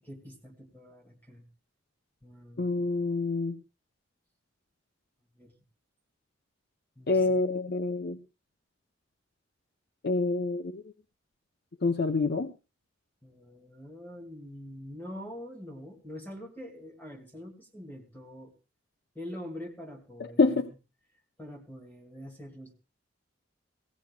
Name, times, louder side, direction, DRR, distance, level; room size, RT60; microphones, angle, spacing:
voice 1, 0.1-1.5 2.2-2.8 5.4-5.6 7.0-7.5 13.2-18.5 19.1-20.7 21.4-22.7, equal, 10° left, 2 dB, 2.2 m, -44 dB
voice 2, 2.6-3.6 7.1-8.2 10.0-10.8 11.8-12.5 20.4-20.7, left 3 dB, 60° left, 7 dB, 0.7 m, -26 dB
20.5 x 16.5 x 2.3 m, 0.30 s
head